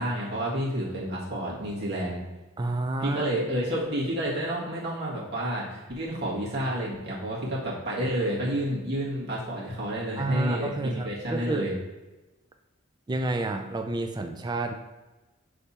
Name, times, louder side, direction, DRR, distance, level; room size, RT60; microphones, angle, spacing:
voice 1, 0.0-2.2 3.0-11.7, equal, 50° right, -5 dB, 1.7 m, -30 dB
voice 2, 2.6-3.3 10.2-11.7 13.1-14.7, right 2 dB, 20° right, 5 dB, 0.4 m, -30 dB
6.8 x 3.3 x 4.2 m, 1.1 s
head